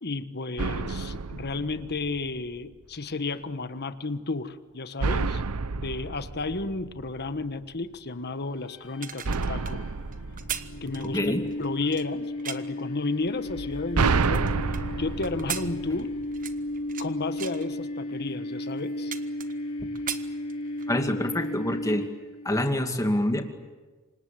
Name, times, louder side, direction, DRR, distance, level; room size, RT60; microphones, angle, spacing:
voice 1, 0.0-5.4 5.7-9.8 10.8-11.2 11.6-14.4 15.0-16.1 17.0-19.1, left 3 dB, 45° left, 11 dB, 1.3 m, -32 dB
sound 1, 0.6-2.5 5.0-7.4 9.2-11.5 13.5-16.5, right 4 dB, 80° right, 0.8 m, -30 dB
sound 2, 8.5-22.5, left 1 dB, 90° left, 4.3 m, -35 dB
sound 3, 8.8-12.8 13.4-14.8 15.2-17.1 17.4-17.7 18.3-18.4 18.7-19.7 19.9-20.9 21.3-21.5, right 9 dB, 40° right, 1.2 m, -38 dB
voice 2, 11.1-11.4 19.8-19.9 20.9-22.0 22.4-23.4, left 1 dB, 15° left, 5 dB, 2.3 m, -26 dB
28.0 x 25.5 x 7.6 m, 1.3 s
head